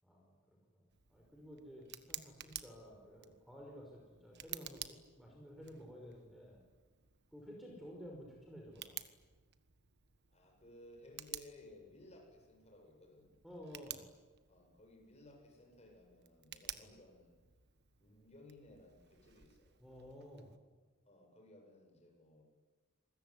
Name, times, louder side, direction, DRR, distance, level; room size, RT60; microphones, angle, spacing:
voice 1, 0.0-6.6 7.3-9.0 13.4-14.1 16.7-16.9 19.8-20.5, equal, ahead, 0 dB, 5.4 m, -53 dB
Tick, 0.9-20.6, right 12 dB, 50° right, 1.5 m, -53 dB
voice 2, 10.3-13.3 14.5-17.4 18.0-19.8 21.0-22.4, left 1 dB, 30° left, 1 dB, 7.9 m, -59 dB
28.0 x 21.5 x 9.9 m, 1.3 s
head